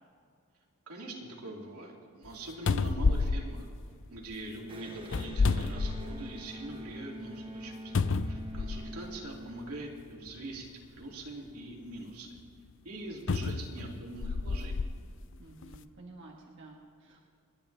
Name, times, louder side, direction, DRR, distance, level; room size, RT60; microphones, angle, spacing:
voice 1, 0.9-3.6 4.1-7.9 8.2-12.3 12.8-14.9, right 2 dB, 85° right, -1 dB, 2.6 m, -43 dB
sound 1, 2.3-2.4 2.7-4.4 5.0-6.5 6.9-7.0 7.9-9.1 10.0-10.1 13.3-14.9 15.6-15.8, left 4 dB, 55° left, 0.5 m, -30 dB
Electric guitar, 4.7-10.1, equal, 25° right, 0.9 m, -45 dB
voice 2, 8.4-9.0 15.4-17.2, right 2 dB, 55° right, -1 dB, 1.4 m, -52 dB
29.0 x 10.5 x 3.3 m, 2.3 s
head